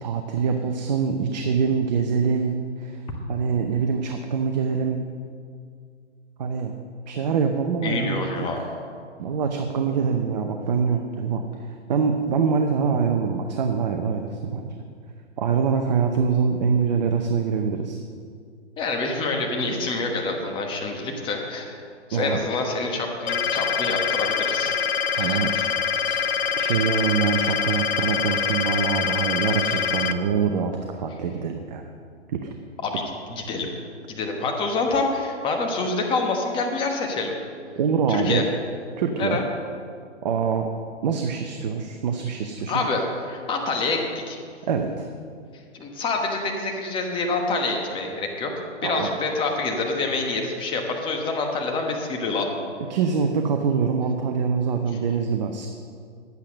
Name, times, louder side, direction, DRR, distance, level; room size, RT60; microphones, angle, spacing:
voice 1, 0.0-3.0 3.3-5.0 6.4-6.7 7.1-8.3 8.6-8.7 9.2-14.7 15.4-18.0 22.1-22.4 24.7-24.8 25.2-25.5 26.0-26.2 26.6-31.8 32.3-32.5 37.8-38.4 39.0-39.4 40.2-40.7 41.0-42.8 44.7-45.1 48.8-49.1 52.9-55.7, right 6 dB, 35° right, 5 dB, 0.8 m, -24 dB
voice 2, 7.8-8.6 18.8-21.8 22.1-24.7 25.1-25.7 32.8-33.0 33.3-33.7 34.1-37.3 38.1-38.5 39.2-39.4 42.7-44.4 45.7-48.5 48.8-52.5, left 3 dB, 15° left, 2 dB, 1.3 m, -27 dB
sound 1, 23.3-30.1, left 7 dB, 60° left, 1.0 m, -24 dB
10.5 x 8.3 x 6.5 m, 2.2 s
hypercardioid pair, 135°, 36 cm